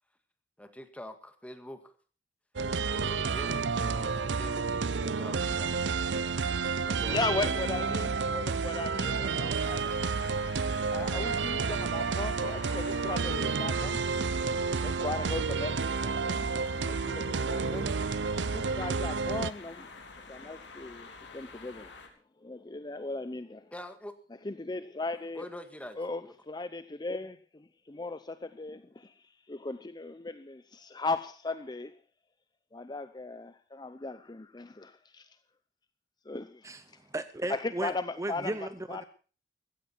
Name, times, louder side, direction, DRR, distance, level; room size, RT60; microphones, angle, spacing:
voice 1, 0.6-1.9 2.9-5.8 6.8-7.6 23.7-24.2 25.4-26.3, left 1 dB, 10° left, 1.8 m, -44 dB
sound 1, 2.6-19.5, right 5 dB, 85° right, 0.6 m, -30 dB
voice 2, 7.1-9.9 10.2-10.3 10.9-14.0 14.5-16.5 16.9-17.9 18.4-19.9 20.3-22.0 22.4-23.7 24.4-25.5 26.0-31.9 32.7-35.3 36.3-36.7 37.5-38.5 38.9-39.0, left 3 dB, 25° left, 0.7 m, -37 dB
sound 2, 9.5-22.1, left 3 dB, 90° left, 3.4 m, -48 dB
voice 3, 37.1-37.9 38.2-39.0, right 1 dB, 20° right, 0.7 m, -35 dB
16.0 x 14.5 x 4.5 m
head